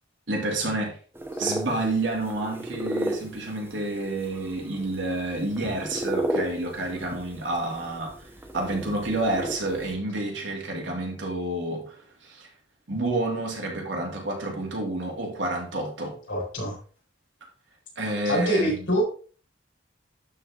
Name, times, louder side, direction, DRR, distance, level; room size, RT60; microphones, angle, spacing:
voice 1, 0.3-1.0 1.4-8.1 8.5-12.5 12.9-16.2 18.0-18.9, right 2 dB, 75° right, 2.5 m, -29 dB
sound 1, 1.1-9.9, right 1 dB, 10° right, 1.1 m, -34 dB
voice 2, 16.3-16.8 18.2-19.0, equal, 80° left, 3.8 m, -25 dB
11.5 x 4.4 x 3.5 m
head